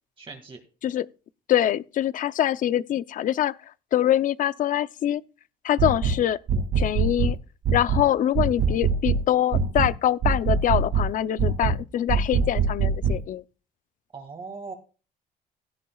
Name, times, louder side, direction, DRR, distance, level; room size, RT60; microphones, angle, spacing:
voice 1, 0.2-0.6 5.8-5.9 14.1-14.7, right 4 dB, 30° right, 2.1 m, -39 dB
voice 2, 1.5-3.5 3.9-5.2 5.6-6.4 6.8-7.4 7.7-13.4, left 11 dB, 50° left, 0.6 m, -24 dB
sound 1, 5.8-6.2 6.5-7.3 7.6-8.1 8.3-9.2 9.5-9.9 10.2-11.1 11.4-11.8 12.1-13.2, right 5 dB, 55° right, 2.3 m, -23 dB
17.0 x 11.0 x 2.3 m
cardioid pair, 110°, 17 cm